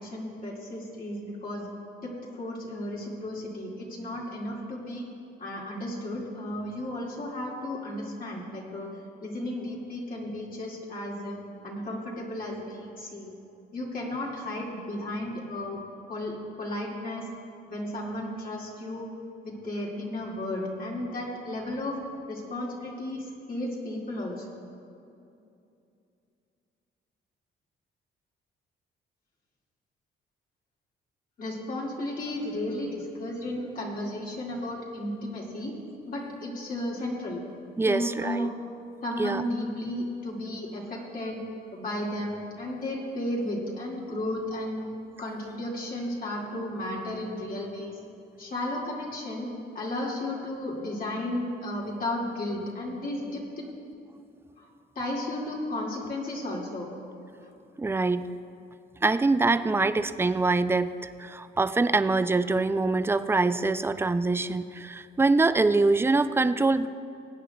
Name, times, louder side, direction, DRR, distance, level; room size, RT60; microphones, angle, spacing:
voice 1, 0.0-1.7 2.0-5.1 5.4-8.9 9.2-11.4 11.6-13.3 13.7-15.8 16.1-17.3 17.7-19.1 19.4-22.0 22.3-24.5 31.4-35.8 36.1-37.4 37.9-38.5 39.0-41.4 41.7-44.9 45.2-48.0 48.4-53.6 54.6-54.7 55.0-56.9, left 1 dB, 45° left, -4 dB, 2.1 m, -34 dB
voice 2, 37.8-38.5 39.2-39.4 57.8-58.3 59.0-66.9, right 3 dB, 10° right, 12 dB, 0.3 m, -24 dB
21.5 x 8.8 x 2.3 m, 2.6 s
cardioid pair, 90°, 20 cm